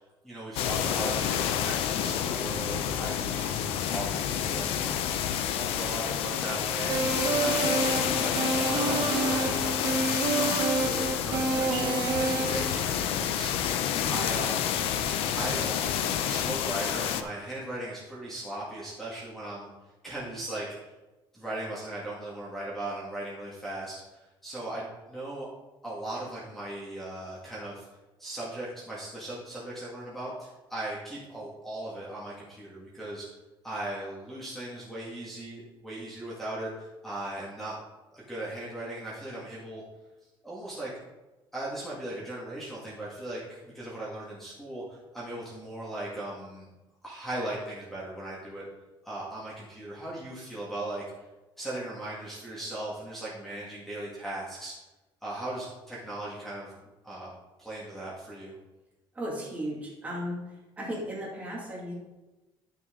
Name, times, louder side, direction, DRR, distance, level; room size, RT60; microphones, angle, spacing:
voice 1, 0.2-5.1 5.6-9.8 10.3-13.7 14.0-14.9 15.3-19.7 20.0-20.7 21.3-25.5 25.8-27.9 28.2-33.3 33.6-37.8 38.1-39.8 40.4-40.9 41.5-46.7 47.0-48.7 49.0-51.0 51.6-54.7 55.2-56.8 57.0-57.3 57.6-58.5, right 1 dB, 5° left, -7 dB, 1.9 m, -38 dB
sound 1, 0.6-17.2, left 9 dB, 75° left, 0.7 m, -29 dB
sound 2, 6.9-12.7, right 4 dB, 50° right, 1.0 m, -28 dB
voice 2, 59.1-61.9, equal, 15° right, -4 dB, 2.3 m, -35 dB
11.0 x 6.4 x 3.8 m, 1.1 s
cardioid pair, 155°, 10 cm